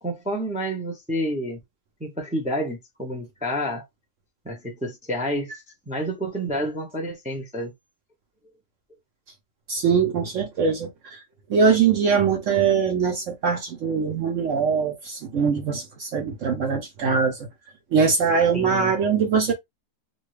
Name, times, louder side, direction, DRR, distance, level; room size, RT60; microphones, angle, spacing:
voice 1, 0.0-1.6 2.0-3.8 4.4-7.7 18.5-18.9, equal, 10° right, 0.3 m, -29 dB
voice 2, 9.7-11.2 11.5-17.4 17.9-19.5, right 6 dB, 65° right, 0.8 m, -22 dB
2.7 x 2.5 x 3.1 m
omnidirectional pair, 1.7 m